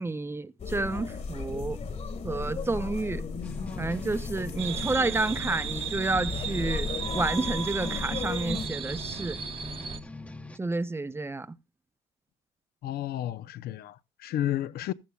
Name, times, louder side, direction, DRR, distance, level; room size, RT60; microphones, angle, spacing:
voice 1, 0.0-1.8 2.2-3.2 3.8-9.4 10.6-11.6, right 3 dB, 15° right, 0.6 m, -30 dB
sound 1, 0.6-8.7, left 4 dB, 40° left, 1.6 m, -35 dB
sound 2, 3.4-10.6, left 3 dB, 10° left, 1.0 m, -43 dB
sound 3, 4.6-10.0, right 9 dB, 30° right, 1.2 m, -35 dB
voice 2, 12.8-14.9, left 12 dB, 65° left, 0.6 m, -32 dB
14.5 x 13.5 x 2.3 m
cardioid pair, 110°, 17 cm